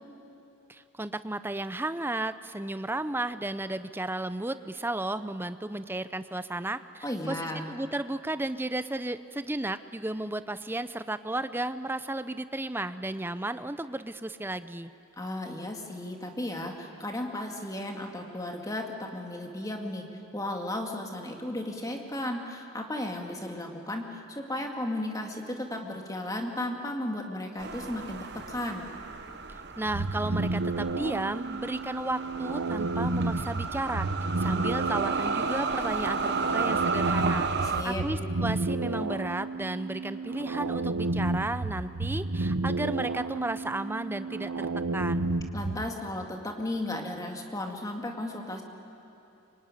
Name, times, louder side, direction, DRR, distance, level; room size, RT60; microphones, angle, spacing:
voice 1, 0.7-14.9 29.8-34.1 34.4-37.5 37.8-45.3, right 2 dB, 10° right, 12 dB, 0.5 m, -33 dB
voice 2, 7.0-7.7 15.2-20.0 20.3-28.9 37.6-38.0 45.5-48.6, left 1 dB, 15° left, 2 dB, 2.2 m, -34 dB
sound 1, 27.6-37.8, right 4 dB, 50° right, 1.1 m, -33 dB
sound 2, 29.8-45.9, right 2 dB, 80° right, 1.0 m, -31 dB
25.0 x 24.0 x 9.8 m, 2.8 s
head